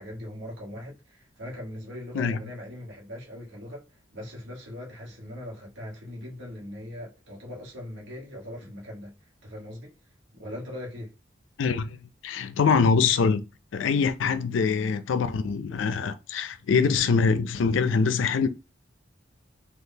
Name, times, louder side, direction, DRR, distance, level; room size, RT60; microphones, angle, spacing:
voice 1, 0.0-9.9 10.3-11.1, left 1 dB, 80° right, 1.4 m, -40 dB
voice 2, 11.6-12.0 12.2-13.4 13.7-18.5, left 5 dB, 85° left, 0.4 m, -24 dB
3.6 x 2.7 x 2.7 m
head